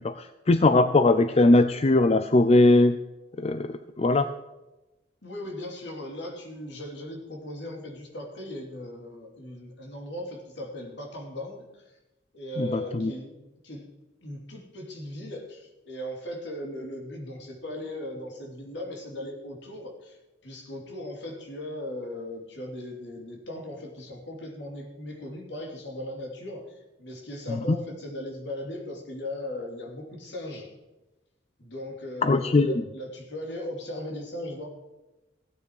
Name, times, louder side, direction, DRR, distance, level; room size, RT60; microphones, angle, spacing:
voice 1, 0.0-3.0 3.4-4.3 12.6-13.1 32.2-32.8, left 2 dB, 35° left, 11 dB, 0.5 m, -20 dB
voice 2, 5.2-12.0 12.3-13.3 13.6-13.9 14.2-30.7 31.6-34.7, left 1 dB, 70° left, 1 dB, 3.0 m, -38 dB
16.0 x 9.4 x 4.8 m, 1.0 s
head